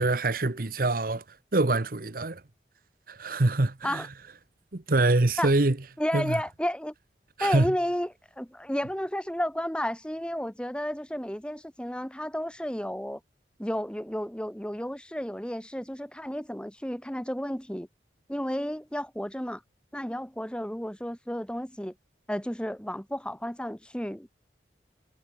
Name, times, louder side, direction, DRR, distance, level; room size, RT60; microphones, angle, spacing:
voice 1, 0.0-2.4 3.1-4.1 4.7-5.8 6.1-6.4 7.4-7.7, right 2 dB, 55° right, 1.1 m, -25 dB
voice 2, 6.0-6.9 7.4-8.1 8.4-13.2 13.6-17.9 18.3-19.6 19.9-21.9 22.3-24.3, equal, 5° left, 2.3 m, -32 dB
head